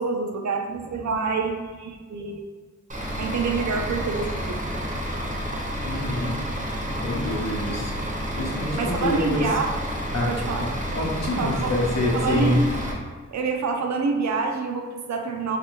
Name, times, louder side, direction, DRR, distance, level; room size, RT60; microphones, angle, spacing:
voice 1, 0.0-2.4 3.2-4.6 8.8-9.7 10.3-10.6 11.4-11.8 12.2-12.6 13.3-15.6, right 4 dB, 70° right, 3 dB, 0.4 m, -27 dB
Bus / Idling, 2.9-12.9, equal, 25° right, 0.6 m, -30 dB
voice 2, 5.8-6.4 7.0-7.9 8.4-9.5 10.1-10.3 10.6-12.6, left 1 dB, 60° left, -2 dB, 0.7 m, -26 dB
2.6 x 2.4 x 2.8 m, 1.4 s
cardioid pair, 65°, 29 cm